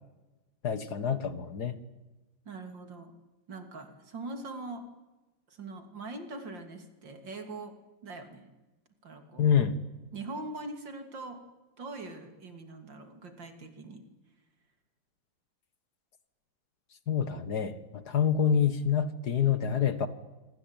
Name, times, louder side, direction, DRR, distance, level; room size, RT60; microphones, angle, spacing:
voice 1, 0.6-1.8 9.4-9.8 17.1-20.1, left 8 dB, 55° left, 12 dB, 2.0 m, -27 dB
voice 2, 2.5-3.2 3.5-4.9 5.5-8.6 9.0-9.5 10.1-11.5 11.8-14.1, right 2 dB, 65° right, 7 dB, 3.6 m, -42 dB
27.0 x 25.0 x 9.0 m, 1.1 s
omnidirectional pair, 2.2 m